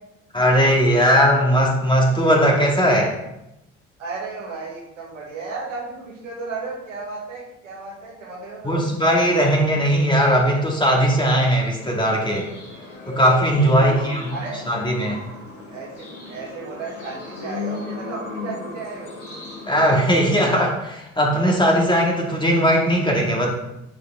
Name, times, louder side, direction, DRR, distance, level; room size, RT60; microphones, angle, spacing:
voice 1, 0.3-3.2 8.6-12.4 13.1-14.4 14.7-15.2 19.7-23.5, equal, 15° left, -1 dB, 2.4 m, -18 dB
voice 2, 4.0-8.9 13.7-14.6 15.7-15.9 16.3-19.2, right 4 dB, 85° right, -4 dB, 2.0 m, -34 dB
sound 1, 11.8-20.5, left 3 dB, 80° left, 2.2 m, -35 dB
9.9 x 4.8 x 3.6 m, 0.88 s
figure-of-eight pair, 50°, 37 cm